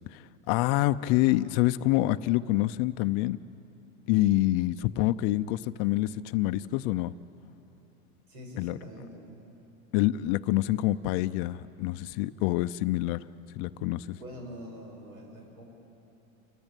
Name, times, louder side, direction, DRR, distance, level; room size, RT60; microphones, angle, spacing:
voice 1, 0.1-3.4 4.1-7.1 8.6-8.8 9.9-13.2 13.5-14.2, left 16 dB, 40° left, 13 dB, 0.5 m, -26 dB
voice 2, 8.3-9.4 14.1-15.6, equal, 85° right, 1 dB, 7.6 m, -44 dB
29.5 x 15.0 x 8.9 m, 3.0 s
supercardioid pair, 130°, 43 cm